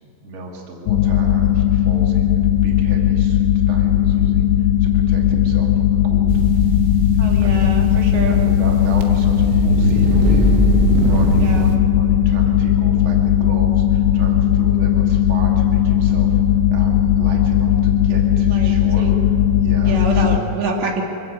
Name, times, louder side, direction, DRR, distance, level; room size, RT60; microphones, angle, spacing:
voice 1, 0.0-6.3 7.4-7.8 8.1-10.5 10.9-16.4 16.7-20.5, right 1 dB, 35° right, -1 dB, 2.5 m, -35 dB
sound 1, 0.9-20.4, left 10 dB, 80° left, 2.6 m, -17 dB
sound 2, 6.3-11.8, right 2 dB, 85° right, 4.1 m, -21 dB
voice 2, 7.2-8.4 11.3-11.7 18.5-19.2 19.8-21.0, right 3 dB, 65° right, 0 dB, 4.0 m, -26 dB
25.0 x 16.0 x 8.3 m, 3.0 s
omnidirectional pair, 5.6 m